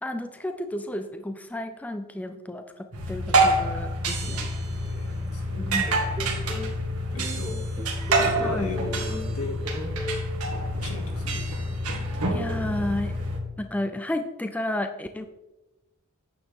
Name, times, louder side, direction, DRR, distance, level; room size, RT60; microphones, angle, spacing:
voice 1, 0.0-4.5 5.6-5.9 8.4-8.7 12.3-13.2 13.6-15.3, left 1 dB, 5° left, 7 dB, 0.4 m, -32 dB
sound 1, 2.9-13.4, right 1 dB, 85° right, 1.9 m, -27 dB
voice 2, 4.2-5.8 7.1-7.6 8.1-9.6 10.8-11.4, left 2 dB, 75° left, 1 dB, 2.3 m, -37 dB
sound 2, 5.9-6.7 7.2-9.4 9.6-10.2, equal, 20° right, 1.1 m, -35 dB
9.5 x 8.6 x 3.6 m, 1.0 s
head